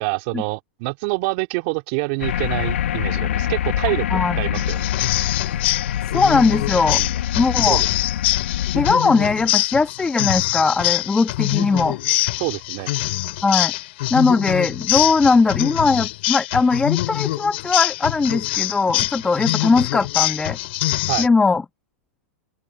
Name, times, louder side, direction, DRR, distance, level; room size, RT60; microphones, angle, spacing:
voice 1, 0.0-5.0 6.9-7.1 7.7-7.9 12.4-12.9 21.1-21.3, right 29 dB, 50° right, 3.5 m, -26 dB
sound 1, 2.2-8.9, left 11 dB, 75° left, 1.1 m, -25 dB
voice 2, 4.1-4.4 6.1-7.0 7.4-7.8 8.7-12.0 13.4-13.7 14.1-20.6 21.2-21.6, left 4 dB, 10° left, 1.3 m, -19 dB
sound 2, 4.5-21.3, left 18 dB, 60° left, 2.7 m, -24 dB
open air
hypercardioid pair, 125°, 7 cm